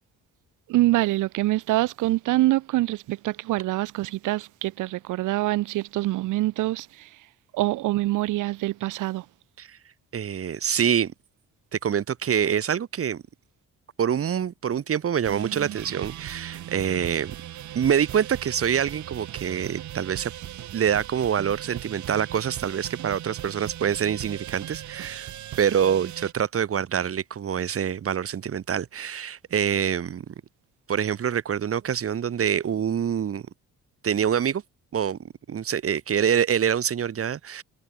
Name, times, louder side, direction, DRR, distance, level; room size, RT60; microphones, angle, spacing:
voice 1, 0.7-6.9 7.5-9.2, right 17 dB, 90° right, 1.2 m, -25 dB
voice 2, 10.1-11.1 11.7-13.2 14.0-17.3 17.7-20.3 20.7-25.3 25.6-30.2 30.9-33.4 34.0-34.6 34.9-37.6, right 8 dB, 50° right, 1.7 m, -25 dB
sound 1, 15.2-26.3, right 12 dB, 75° right, 1.9 m, -38 dB
cardioid pair, 90°, 30 cm